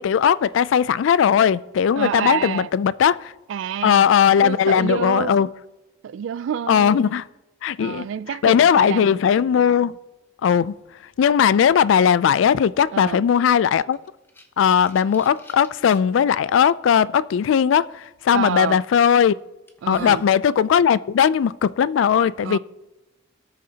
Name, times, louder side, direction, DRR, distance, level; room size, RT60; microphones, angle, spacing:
voice 1, 0.0-3.3 3.8-5.5 6.7-7.3 7.6-8.1 8.4-9.9 10.4-10.8 11.2-14.0 14.6-19.3 19.9-22.6, left 8 dB, 70° left, 0.3 m, -18 dB
voice 2, 2.0-2.7 3.5-4.1 4.4-5.4 6.0-7.2 7.8-9.2 12.9-13.2 18.3-18.8 19.8-20.2 22.4-22.6, right 8 dB, 65° right, 0.3 m, -28 dB
sound 1, 13.9-16.0 16.6-16.7 18.5-18.7 19.2-19.3 19.7-20.3, equal, 10° left, 0.9 m, -43 dB
17.0 x 6.5 x 2.8 m
head